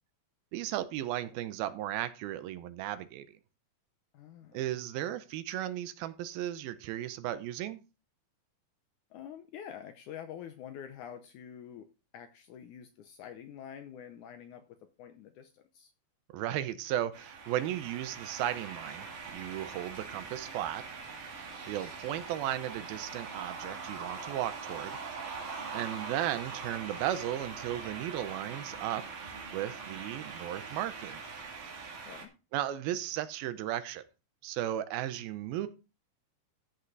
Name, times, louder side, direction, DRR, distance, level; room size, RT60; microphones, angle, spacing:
voice 1, 0.5-3.4 4.5-7.8 16.3-19.1 19.3-20.8 21.7-25.0 25.7-31.2 32.5-34.1 34.4-35.7, right 12 dB, 80° right, 13 dB, 2.6 m, -35 dB
voice 2, 4.1-4.6 9.1-11.9 12.1-15.9 32.0-32.3, left 9 dB, 75° left, 8 dB, 1.9 m, -47 dB
sound 1, 17.1-32.3, right 5 dB, 60° right, 3.4 m, -42 dB
13.5 x 5.7 x 4.0 m, 0.31 s
omnidirectional pair, 4.3 m